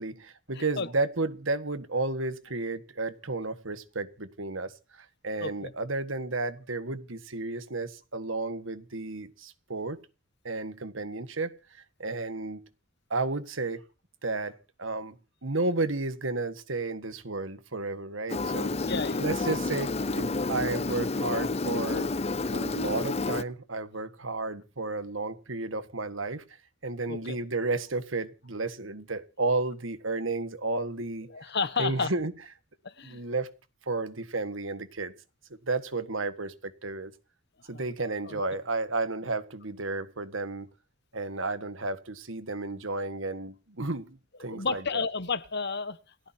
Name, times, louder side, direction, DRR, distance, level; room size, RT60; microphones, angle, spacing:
voice 1, 0.0-10.0 10.4-11.6 12.0-12.6 13.1-13.8 14.2-15.2 15.4-18.9 19.2-22.1 22.5-26.4 26.8-31.3 31.8-32.3 33.0-33.5 33.9-35.1 35.5-37.1 37.7-40.7 41.1-45.1, right 3 dB, 70° right, 1.6 m, -32 dB
voice 2, 0.5-0.9 5.4-5.7 18.9-19.3 27.1-27.4 31.3-32.1 32.8-33.2 37.7-37.9 38.2-38.4 44.5-46.0, left 4 dB, 55° left, 1.3 m, -32 dB
Engine, 18.3-23.4, left 3 dB, 30° left, 0.6 m, -30 dB
29.0 x 10.0 x 2.8 m
head